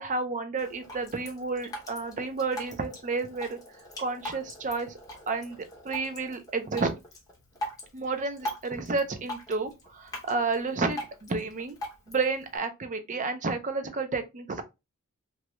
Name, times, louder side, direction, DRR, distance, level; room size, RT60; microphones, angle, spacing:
voice 1, 0.0-3.6 4.0-4.9 5.3-6.9 7.9-11.8 12.1-14.6, right 4 dB, 35° right, 0.5 m, -31 dB
Drip, 0.6-12.6, equal, 15° left, 0.9 m, -42 dB
3.0 x 2.3 x 3.0 m
head